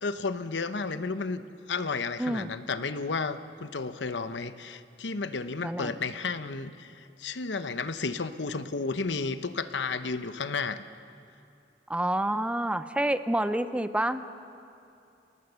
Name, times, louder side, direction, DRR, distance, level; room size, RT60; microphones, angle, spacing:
voice 1, 0.0-1.4 1.7-10.8, left 4 dB, 80° left, 11 dB, 0.9 m, -32 dB
voice 2, 2.2-2.5 5.6-5.9 11.9-14.2, right 1 dB, 5° right, 11 dB, 0.6 m, -28 dB
29.0 x 19.0 x 6.9 m, 2.6 s
head